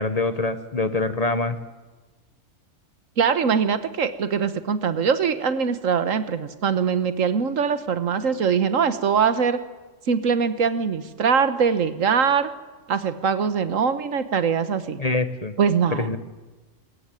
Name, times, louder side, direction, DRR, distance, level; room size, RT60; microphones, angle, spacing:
voice 1, 0.0-1.6 15.0-15.5 16.0-16.2, left 3 dB, 30° left, 11 dB, 1.1 m, -24 dB
voice 2, 3.2-9.6 10.1-12.5 12.9-15.0 15.6-16.2, right 6 dB, 80° right, 12 dB, 1.6 m, -22 dB
21.0 x 17.5 x 9.1 m, 1.2 s
omnidirectional pair, 1.3 m